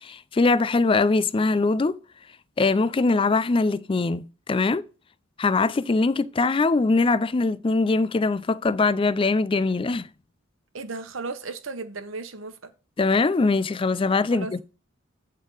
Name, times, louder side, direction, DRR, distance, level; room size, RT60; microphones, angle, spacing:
voice 1, 0.0-2.0 2.6-4.8 5.4-10.1 13.0-14.6, left 3 dB, 25° left, 0.4 m, -22 dB
voice 2, 10.7-12.7 14.3-14.5, right 3 dB, 75° right, 0.9 m, -35 dB
8.3 x 3.6 x 6.3 m
head